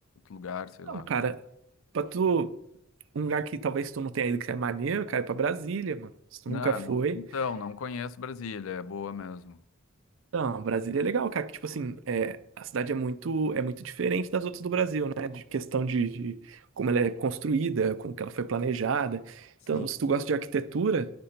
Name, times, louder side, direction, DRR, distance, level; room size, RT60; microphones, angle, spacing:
voice 1, 0.3-1.1 6.5-9.6 19.7-19.9, left 6 dB, 85° left, 0.4 m, -36 dB
voice 2, 0.8-1.4 1.9-2.5 3.1-6.1 6.5-7.2 10.3-21.1, right 5 dB, 70° right, 0.4 m, -29 dB
10.0 x 5.1 x 4.3 m
head